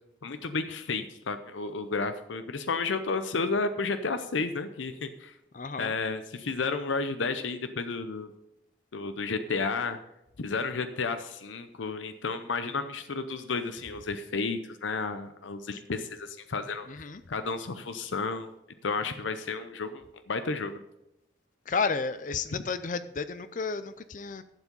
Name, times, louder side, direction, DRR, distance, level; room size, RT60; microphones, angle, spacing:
voice 1, 0.2-5.3 5.8-8.3 8.9-10.0 10.4-16.9 17.3-18.5 18.8-20.8 22.5-22.6, left 4 dB, 85° left, 10 dB, 0.7 m, -32 dB
voice 2, 5.5-6.0 16.9-17.2 21.7-24.4, left 4 dB, 40° left, 12 dB, 0.5 m, -32 dB
12.0 x 7.3 x 5.3 m, 0.88 s
head